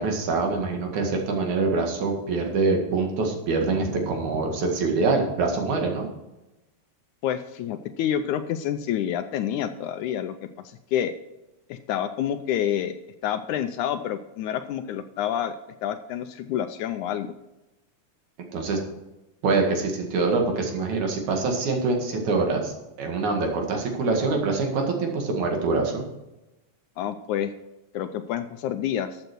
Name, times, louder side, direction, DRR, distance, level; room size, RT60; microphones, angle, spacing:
voice 1, 0.0-6.1 18.5-18.8 19.4-22.7 23.0-26.0, right 3 dB, 65° right, 2 dB, 3.2 m, -25 dB
voice 2, 7.2-10.4 10.6-11.1 11.7-12.9 13.2-15.5 15.8-17.3 27.0-27.5 27.9-29.2, left 10 dB, 80° left, 9 dB, 1.9 m, -28 dB
13.0 x 7.8 x 4.6 m, 0.97 s
omnidirectional pair, 3.8 m